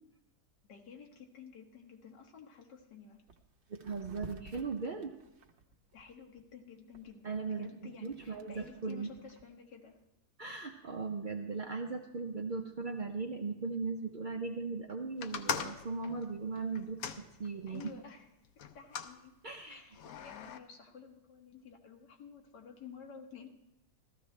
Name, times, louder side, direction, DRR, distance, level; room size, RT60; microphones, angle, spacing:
voice 1, 0.7-3.2 5.9-10.0 17.7-18.3 18.7-19.3 19.7-23.5, left 6 dB, 85° left, 2 dB, 1.8 m, -52 dB
sound 1, 2.8-2.9 3.2-3.4 3.7-6.4 6.9-9.5, right 4 dB, 50° right, 0.9 m, -53 dB
voice 2, 3.7-5.2 7.2-7.7 8.0-9.1 10.4-17.8 19.4-19.8, right 4 dB, 85° right, 3 dB, 0.4 m, -38 dB
sound 2, 15.2-18.0 18.6-19.2 19.9-20.6, left 6 dB, 65° left, 1.0 m, -40 dB
15.0 x 13.5 x 3.2 m, 0.87 s
omnidirectional pair, 1.8 m